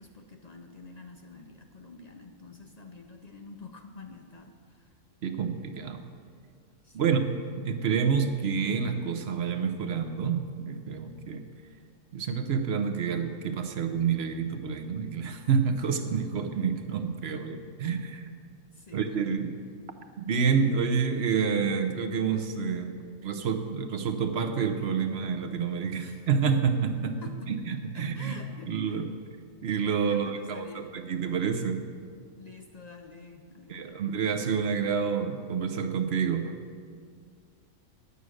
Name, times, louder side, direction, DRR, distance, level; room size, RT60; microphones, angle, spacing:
voice 1, 0.0-5.0 6.8-7.1 18.7-19.3 26.0-26.3 27.2-27.5 27.9-29.0 30.1-30.9 32.3-34.0, left 3 dB, 55° left, 4 dB, 0.4 m, -48 dB
voice 2, 5.2-6.1 6.9-7.2 7.6-11.4 12.1-18.3 18.9-19.5 20.2-22.9 23.2-27.2 27.5-28.4 28.7-29.1 29.6-31.8 33.7-36.6, right 6 dB, 50° right, 7 dB, 0.9 m, -28 dB
11.0 x 8.3 x 6.4 m, 2.1 s
omnidirectional pair, 1.6 m